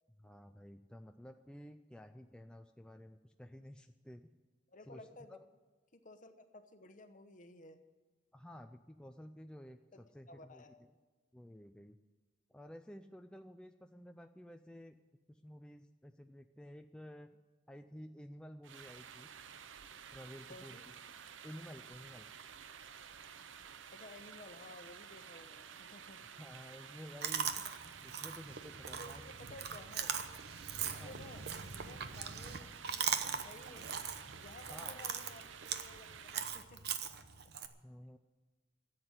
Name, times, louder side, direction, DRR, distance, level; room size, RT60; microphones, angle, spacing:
voice 1, 0.2-4.3 4.9-5.0 5.3-5.4 8.3-10.6 11.3-12.0 12.5-15.0 15.3-17.4 17.7-19.3 20.1-20.9 21.4-22.3 26.4-29.2 30.9-31.2 34.7-35.0 37.8-38.2, equal, 5° left, 5 dB, 0.4 m, -52 dB
voice 2, 4.7-5.4 5.9-7.8 9.9-10.9 20.5-20.9 23.9-26.3 28.9-30.1 30.8-33.9 34.3-35.5 35.8-36.8, left 2 dB, 45° left, 8 dB, 1.1 m, -55 dB
sound 1, 18.6-36.7, right 7 dB, 90° right, 0.7 m, -52 dB
Chewing mastication, 27.2-37.7, right 7 dB, 60° right, 0.9 m, -40 dB
13.5 x 7.9 x 9.5 m, 1.3 s
head